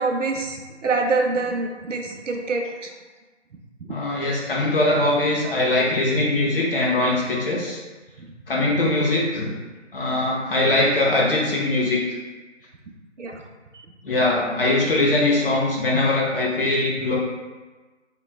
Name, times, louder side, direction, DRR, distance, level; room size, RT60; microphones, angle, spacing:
voice 1, 0.0-2.9 13.2-13.4, right 3 dB, 80° right, 2 dB, 0.5 m, -25 dB
voice 2, 3.9-7.8 8.5-9.5 9.9-12.0 14.0-17.2, left 2 dB, 50° left, -4 dB, 0.5 m, -21 dB
3.0 x 2.2 x 2.3 m, 1.3 s
figure-of-eight pair, 160°, 37 cm